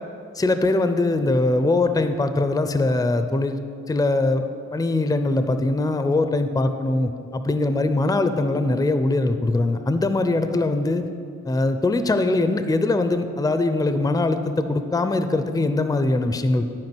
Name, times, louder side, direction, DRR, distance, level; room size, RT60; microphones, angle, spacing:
voice 1, 0.4-3.6 3.9-4.4 4.7-11.0 11.4-16.7, left 2 dB, 10° left, 9 dB, 0.5 m, -22 dB
11.0 x 5.0 x 6.1 m, 2.5 s
cardioid pair, 65°, 29 cm